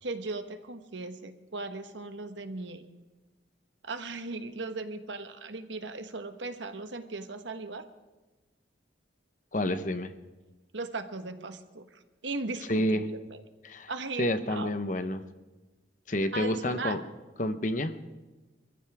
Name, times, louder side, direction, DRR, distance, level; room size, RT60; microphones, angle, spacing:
voice 1, 0.0-2.8 3.8-7.9 10.7-13.4 13.9-14.7 16.2-17.0, right 3 dB, 75° right, 8 dB, 1.3 m, -37 dB
voice 2, 9.5-10.1 12.7-13.1 13.6-13.9 14.2-15.2 16.1-17.0 17.4-17.9, left 1 dB, 45° left, 10 dB, 0.9 m, -29 dB
27.0 x 15.0 x 3.5 m, 1.2 s
head